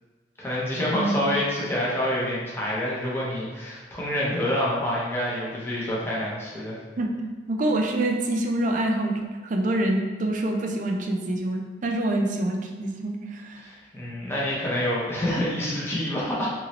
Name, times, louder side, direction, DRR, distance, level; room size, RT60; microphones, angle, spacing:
voice 1, 0.4-6.8 13.6-16.5, left 1 dB, 15° left, -6 dB, 0.7 m, -27 dB
voice 2, 7.5-13.6, right 1 dB, 45° right, 2 dB, 0.4 m, -26 dB
2.9 x 2.7 x 2.8 m, 1.4 s
head